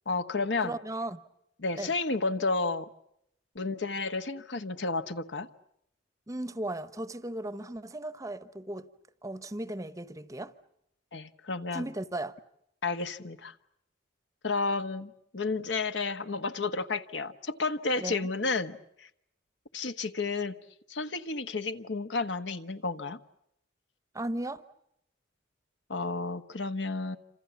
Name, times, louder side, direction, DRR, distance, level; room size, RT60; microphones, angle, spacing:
voice 1, 0.1-0.8 1.6-2.9 3.5-5.5 11.1-11.9 12.8-13.5 14.4-19.1 19.7-20.6 20.9-23.2 25.9-27.2, left 3 dB, 60° left, 1.3 m, -31 dB
voice 2, 0.6-1.2 1.8-1.9 6.3-8.9 9.2-10.5 11.7-12.3 18.0-18.3 24.1-24.6, right 1 dB, 15° right, 1.0 m, -36 dB
28.0 x 27.0 x 7.1 m
head